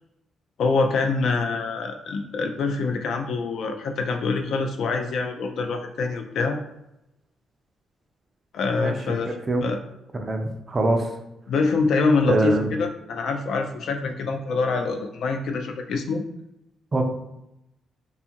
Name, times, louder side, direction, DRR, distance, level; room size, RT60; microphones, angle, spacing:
voice 1, 0.6-6.6 8.5-9.4 9.6-9.8 11.5-16.2, left 4 dB, 65° left, 5 dB, 0.3 m, -25 dB
voice 2, 9.2-9.6 10.1-11.1 12.2-12.7 16.9-17.0, right 2 dB, 25° right, 3 dB, 0.4 m, -24 dB
2.6 x 2.3 x 2.8 m, 0.86 s
cardioid pair, 140°, 0 cm